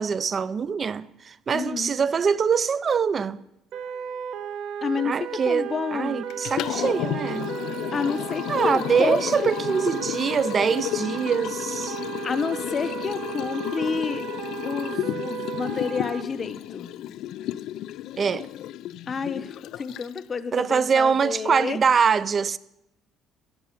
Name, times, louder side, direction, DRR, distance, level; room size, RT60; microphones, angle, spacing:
voice 1, 0.0-3.4 5.0-7.5 8.5-12.0 18.2-18.5 20.5-22.6, right 6 dB, 35° right, 0.4 m, -24 dB
voice 2, 1.5-2.0 4.8-6.3 7.9-9.6 12.2-14.2 14.6-16.9 19.1-21.8, left 5 dB, 35° left, 0.8 m, -29 dB
sound 1, 3.7-16.2, right 9 dB, 65° right, 0.9 m, -35 dB
Liquid, 6.3-20.4, left 13 dB, 70° left, 0.3 m, -32 dB
15.0 x 5.5 x 9.3 m
cardioid pair, 110°, 0 cm